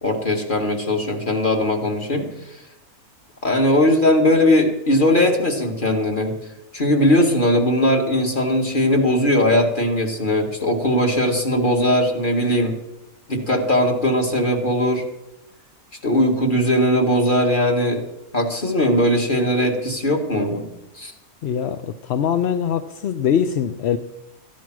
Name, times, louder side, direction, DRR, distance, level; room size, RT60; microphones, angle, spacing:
voice 1, 0.0-2.2 3.4-6.3 6.7-12.8 13.3-15.0 16.0-18.0 18.3-20.7 21.0-21.1, left 1 dB, 35° left, 2 dB, 2.2 m, -19 dB
voice 2, 21.4-24.0, left 8 dB, 60° left, 8 dB, 0.8 m, -22 dB
14.5 x 10.0 x 6.1 m, 0.88 s
omnidirectional pair, 1.5 m